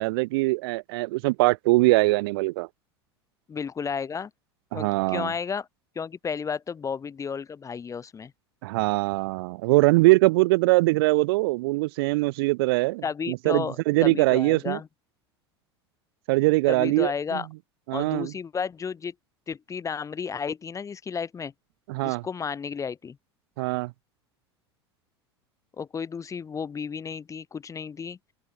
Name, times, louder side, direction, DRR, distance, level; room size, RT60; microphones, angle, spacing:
voice 1, 0.0-2.7 4.7-5.3 8.6-14.8 16.3-17.4 17.9-18.3 21.9-22.2 23.6-23.9, right 22 dB, 60° right, 5.0 m, -22 dB
voice 2, 3.5-4.3 4.7-5.7 6.0-8.3 13.0-14.9 16.7-17.5 17.9-19.1 19.5-21.5 22.0-23.2 25.8-28.2, left 6 dB, 20° left, 2.6 m, -32 dB
open air
figure-of-eight pair, 80°, 14 cm